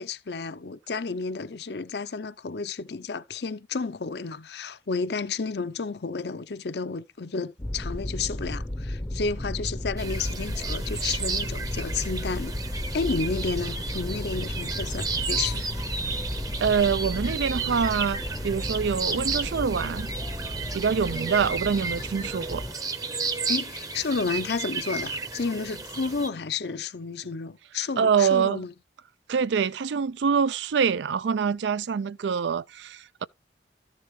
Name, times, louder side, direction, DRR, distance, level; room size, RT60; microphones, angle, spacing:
voice 1, 0.0-12.5 12.9-15.7 23.5-28.7, left 4 dB, 70° left, 0.6 m, -31 dB
sound 1, 7.6-22.7, left 1 dB, 20° left, 0.6 m, -33 dB
sound 2, 10.0-26.3, right 4 dB, 20° right, 0.7 m, -33 dB
voice 2, 16.6-20.1 20.7-22.6 28.0-28.6 29.3-33.3, right 6 dB, 80° right, 0.4 m, -25 dB
13.5 x 6.5 x 3.1 m
head